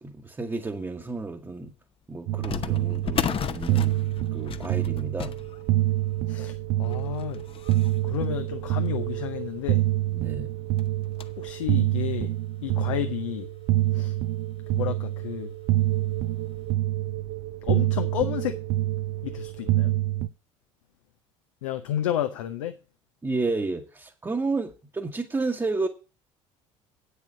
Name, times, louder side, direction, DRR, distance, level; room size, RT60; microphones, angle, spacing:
voice 1, 0.0-1.7 2.1-5.3 10.1-10.5 23.2-25.9, right 3 dB, 15° right, 1.3 m, -31 dB
sound 1, 1.0-1.1 2.4-9.4 9.9-10.0 10.3-10.4 10.8-11.5 12.0-12.1 13.0-13.1 13.4-13.6 14.9-15.2 15.6-15.7 16.3-16.5, left 8 dB, 30° left, 0.8 m, -35 dB
sound 2, 2.3-20.3, right 15 dB, 50° right, 0.6 m, -27 dB
voice 2, 6.3-7.4 8.0-9.8 11.4-12.3 12.6-13.5 13.9-14.1 14.7-15.5 17.6-18.6 19.2-19.9 21.6-22.7, left 12 dB, 70° left, 0.8 m, -31 dB
9.0 x 6.7 x 7.5 m
figure-of-eight pair, 60°, 17 cm